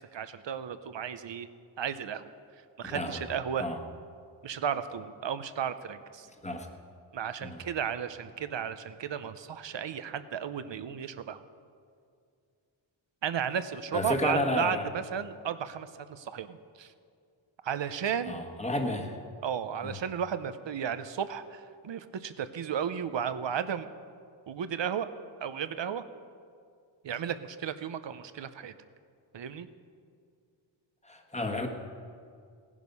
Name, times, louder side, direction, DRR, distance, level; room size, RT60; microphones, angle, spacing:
voice 1, 0.0-1.5 1.8-2.3 2.8-3.6 4.4-6.3 7.1-11.4 13.2-16.9 17.6-18.4 19.4-23.9 24.5-25.1 25.4-26.0 27.0-28.7 29.3-29.7, right 8 dB, 65° right, 12 dB, 0.8 m, -34 dB
voice 2, 2.8-3.2 3.6-3.8 6.4-6.7 7.4-7.6 13.9-14.8 18.3-19.2 19.8-19.9 31.0-31.7, left 1 dB, 15° left, 3 dB, 1.5 m, -31 dB
18.0 x 11.0 x 5.5 m, 2.2 s
wide cardioid pair, 120°, 48 cm